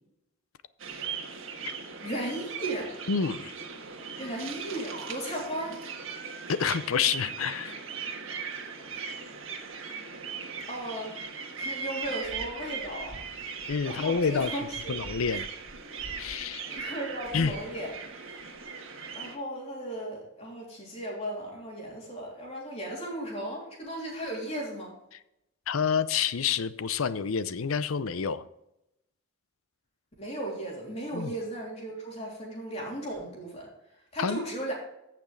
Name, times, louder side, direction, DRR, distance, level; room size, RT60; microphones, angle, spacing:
sound 1, 0.8-19.4, right 5 dB, 75° right, 1.5 m, -39 dB
voice 1, 2.0-2.9 4.2-5.8 8.9-9.0 10.7-11.1 11.6-13.2 13.8-14.9 16.6-17.9 19.1-24.9 30.2-33.7 34.1-34.7, right 1 dB, 30° left, -2 dB, 3.3 m, -36 dB
voice 2, 3.1-3.5 6.5-7.8 13.7-14.5 14.9-15.5 16.2-16.6 17.3-17.5 25.7-28.4 31.1-31.3 34.2-34.4, left 6 dB, 85° left, 15 dB, 0.6 m, -28 dB
15.0 x 5.9 x 3.3 m, 0.85 s
head